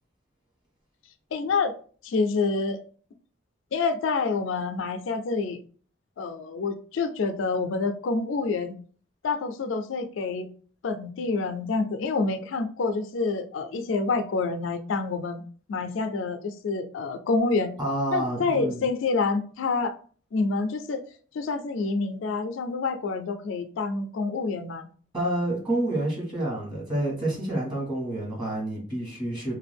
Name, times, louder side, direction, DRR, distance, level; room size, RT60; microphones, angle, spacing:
voice 1, 1.3-1.7 2.0-2.8 3.7-5.6 6.2-8.8 9.2-10.5 10.8-15.4 15.7-17.7 18.1-19.9 20.3-21.0 21.3-24.9, left 4 dB, 75° left, 8 dB, 0.4 m, -27 dB
voice 2, 17.8-18.8 25.1-29.6, right 1 dB, 25° right, -4 dB, 1.3 m, -28 dB
2.6 x 2.3 x 3.3 m, 0.43 s
head